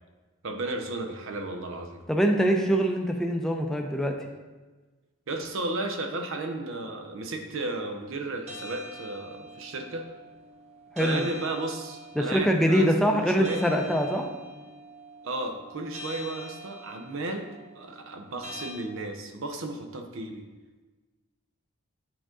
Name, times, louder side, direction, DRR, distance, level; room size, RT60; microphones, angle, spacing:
voice 1, 0.4-2.0 5.3-10.0 11.0-13.6 15.2-20.4, right 2 dB, 65° right, 4 dB, 0.7 m, -34 dB
voice 2, 2.1-4.1 11.0-11.3 12.2-14.3, equal, ahead, 2 dB, 0.5 m, -24 dB
sound 1, 8.5-18.7, equal, 30° right, 0.9 m, -44 dB
7.7 x 3.7 x 3.7 m, 1.3 s
head